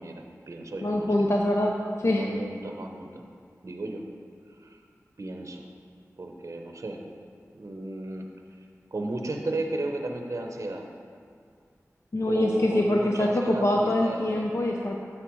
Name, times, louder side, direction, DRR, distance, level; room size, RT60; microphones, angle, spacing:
voice 1, 0.0-1.1 2.2-3.2 3.6-4.1 4.5-4.8 5.2-5.6 6.2-7.1 7.5-8.6 8.9-10.9 12.3-14.5, right 2 dB, 55° right, 3 dB, 0.7 m, -34 dB
voice 2, 0.8-1.7 2.0-2.3 12.1-15.0, left 1 dB, 55° left, 0 dB, 0.5 m, -24 dB
9.6 x 6.5 x 3.1 m, 2.2 s
wide cardioid pair, 50°, 6 cm